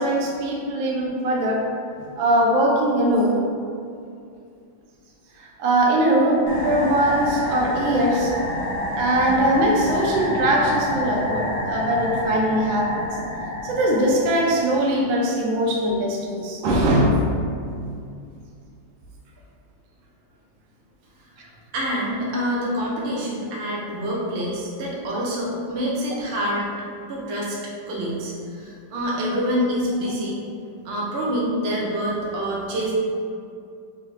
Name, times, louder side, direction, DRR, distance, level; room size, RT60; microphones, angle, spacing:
voice 1, 0.0-1.6 2.2-3.4 5.4-8.3 9.0-13.0 13.6-17.2, right 1 dB, 85° right, -1 dB, 1.4 m, -21 dB
sound 1, 6.5-15.3, left 1 dB, 85° left, 0.5 m, -28 dB
voice 2, 21.7-26.7 27.1-27.6 27.9-30.4 30.8-32.9, equal, 55° right, -4 dB, 0.8 m, -26 dB
3.6 x 3.3 x 3.0 m, 2.4 s
omnidirectional pair, 2.1 m